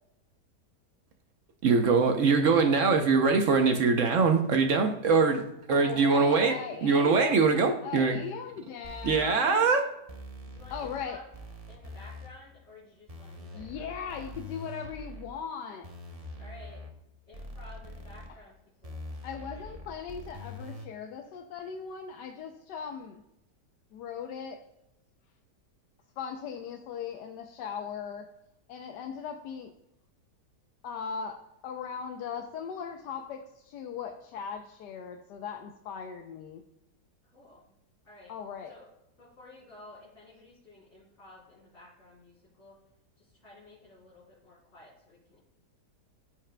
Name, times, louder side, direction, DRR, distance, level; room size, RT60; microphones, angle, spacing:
voice 1, 1.6-5.4 5.7-6.5 6.8-8.2 9.0-9.8, right 4 dB, 60° right, 5 dB, 0.9 m, -23 dB
voice 2, 5.7-7.4 7.8-9.6 10.7-11.2 13.5-15.9 18.3-18.4 19.2-23.2 23.9-24.6 26.2-28.3 28.7-29.7 30.8-36.6 38.3-38.7, left 7 dB, 80° left, 4 dB, 1.2 m, -39 dB
sound 1, 8.8-9.2 10.1-11.1 11.3-12.3 13.1-15.3 15.8-16.9 17.3-18.3 18.8-20.9, left 1 dB, 35° right, 0.6 m, -43 dB
voice 3, 9.6-10.2 10.5-11.3 11.7-14.3 16.4-16.8 17.3-18.5 18.8-19.0 19.4-19.8 37.3-37.7 38.0-38.4 38.7-38.9 39.2-42.8 43.4-45.4, left 2 dB, 40° left, -11 dB, 3.5 m, -53 dB
14.0 x 4.9 x 2.2 m, 0.85 s
omnidirectional pair, 1.8 m